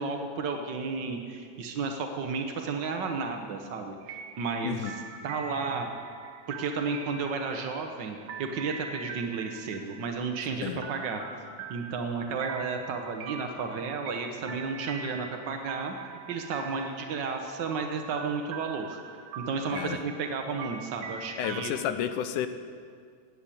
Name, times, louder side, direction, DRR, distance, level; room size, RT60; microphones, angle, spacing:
voice 1, 0.0-4.9 5.2-5.9 6.5-11.2 11.7-15.9 16.3-19.0 19.4-21.7, right 4 dB, 80° right, 4 dB, 1.0 m, -33 dB
sound 1, 4.0-21.9, right 6 dB, 60° right, 2.0 m, -43 dB
voice 2, 4.6-4.9 10.6-10.8 19.7-20.0 21.4-22.5, left 10 dB, 85° left, 10 dB, 2.3 m, -31 dB
17.5 x 8.8 x 8.5 m, 2.1 s
omnidirectional pair, 3.6 m